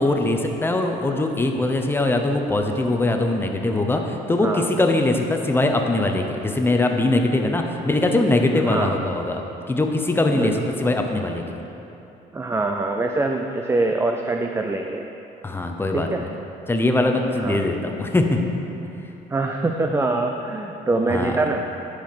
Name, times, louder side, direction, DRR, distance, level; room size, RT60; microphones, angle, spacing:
voice 1, 0.0-9.4 9.7-11.6 15.4-16.1 16.7-18.4 21.1-21.3, left 2 dB, 15° left, 3 dB, 0.8 m, -21 dB
voice 2, 8.7-9.0 10.3-11.1 12.3-15.1 15.9-16.2 17.4-17.7 19.3-21.7, right 2 dB, 15° right, 3 dB, 0.4 m, -24 dB
10.5 x 4.9 x 5.9 m, 2.9 s
cardioid pair, 110°, 17 cm